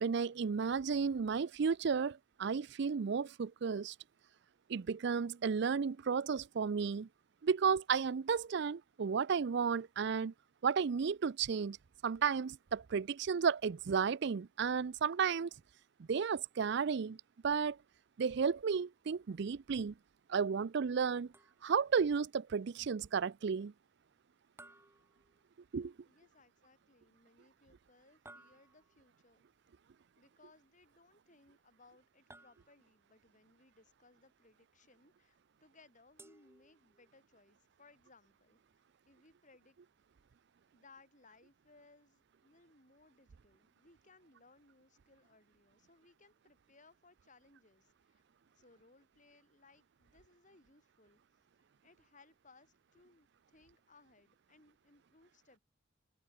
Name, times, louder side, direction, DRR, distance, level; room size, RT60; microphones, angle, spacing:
voice 1, 0.0-3.9 4.7-7.1 7.4-10.3 10.6-11.8 12.0-15.5 16.1-17.2 17.4-17.8 18.2-19.9 20.3-21.3 21.6-23.7 25.7-25.9, right 6 dB, 60° right, 0.4 m, -33 dB
sound 1, 21.3-22.0 24.6-25.8 28.3-29.1 32.3-33.1 36.2-37.2, right 2 dB, 15° right, 6.0 m, -60 dB
voice 2, 26.1-29.5 30.2-39.8 40.7-48.2 48.5-51.2 51.6-55.6, left 3 dB, 40° left, 7.8 m, -65 dB
head